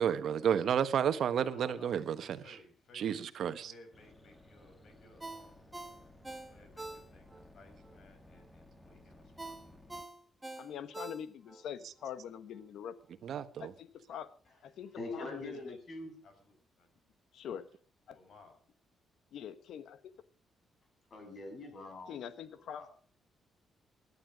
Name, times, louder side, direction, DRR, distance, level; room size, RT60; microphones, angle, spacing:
voice 1, 0.0-2.6 2.9-3.7 13.2-13.7, right 8 dB, 65° right, 1.3 m, -31 dB
voice 2, 1.4-3.2 3.6-5.7 6.5-9.8 16.2-16.9 18.1-18.6, left 2 dB, 65° left, 6.2 m, -59 dB
sound 1, 3.9-10.0, left 1 dB, 15° left, 2.3 m, -58 dB
Ringtone, 5.2-7.5 7.8-7.9 9.4-11.6 12.0-12.1, right 2 dB, 10° right, 1.7 m, -45 dB
voice 3, 10.6-12.9 13.6-14.3 14.6-15.6 17.3-17.7 18.1-18.2 19.3-20.1 22.1-22.9, left 9 dB, 80° left, 1.3 m, -44 dB
voice 4, 14.9-16.1 21.1-22.3 22.6-22.9, left 2 dB, 45° left, 6.7 m, -43 dB
17.5 x 11.5 x 6.3 m
cardioid pair, 115°, 0 cm